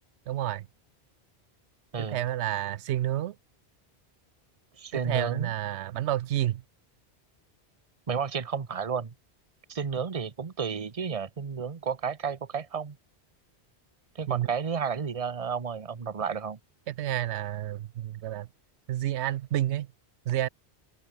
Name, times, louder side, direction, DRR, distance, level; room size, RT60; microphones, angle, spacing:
voice 1, 0.3-0.7 2.0-3.3 4.9-6.6 14.3-14.5 16.9-18.5 18.9-19.9 20.3-20.5, right 12 dB, 90° right, 0.9 m, -29 dB
voice 2, 4.8-5.5 8.1-9.1 9.7-13.0 14.1-16.6, right 6 dB, 35° right, 1.0 m, -32 dB
open air
omnidirectional pair, 1.1 m